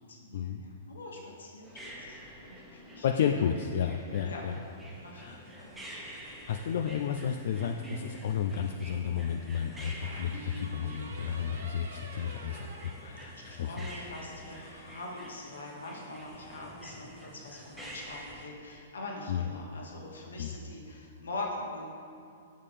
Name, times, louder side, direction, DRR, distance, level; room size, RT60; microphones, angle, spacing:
voice 1, 0.1-3.3 4.3-4.4 5.0-5.8 13.3-21.9, left 2 dB, 80° left, -1 dB, 1.2 m, -43 dB
sound 1, 1.6-18.5, equal, 10° right, 1.1 m, -48 dB
voice 2, 3.0-4.5 5.1-5.4 6.5-13.3 13.6-13.8 19.3-19.5 20.4-20.5, left 8 dB, 65° left, 4 dB, 0.3 m, -32 dB
sound 2, 7.3-8.2 10.0-13.8, right 3 dB, 80° right, 0.7 m, -46 dB
6.4 x 5.6 x 3.4 m, 2.4 s
hypercardioid pair, 120°, 0 cm